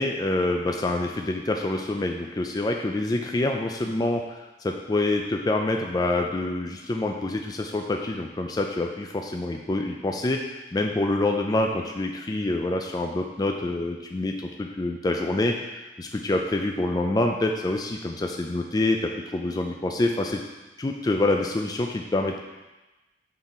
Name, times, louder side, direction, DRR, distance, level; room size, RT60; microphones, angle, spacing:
voice 1, 0.0-10.4 10.7-15.5 16.0-20.4 20.8-22.4, left 2 dB, 20° left, 2 dB, 0.4 m, -26 dB
5.8 x 5.7 x 4.3 m, 1.1 s
head